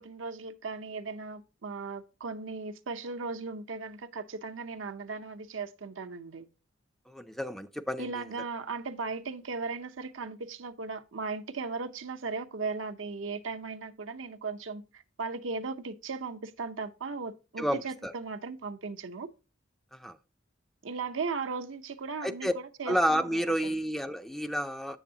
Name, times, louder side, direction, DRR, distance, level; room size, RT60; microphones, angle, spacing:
voice 1, 0.0-6.5 8.0-19.3 20.8-23.8, right 4 dB, 85° right, 0.7 m, -37 dB
voice 2, 7.1-8.1 17.6-18.1 19.9-20.2 22.2-22.5 22.9-25.0, equal, ahead, 0.3 m, -30 dB
7.7 x 7.1 x 2.7 m
head